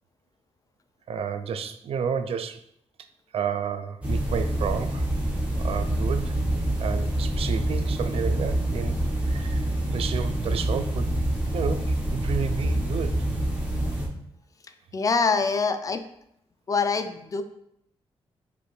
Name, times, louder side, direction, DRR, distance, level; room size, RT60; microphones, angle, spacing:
voice 1, 1.1-2.6 3.3-5.0 5.6-6.4 6.8-9.7 9.9-11.2 11.5-13.2, right 7 dB, 65° right, 9 dB, 0.4 m, -31 dB
sound 1, 4.0-14.1, right 1 dB, 15° right, 1.0 m, -26 dB
voice 2, 14.9-16.0 16.7-17.4, left 4 dB, 30° left, 8 dB, 0.4 m, -24 dB
5.0 x 3.2 x 3.1 m, 0.73 s
wide cardioid pair, 130°, 11 cm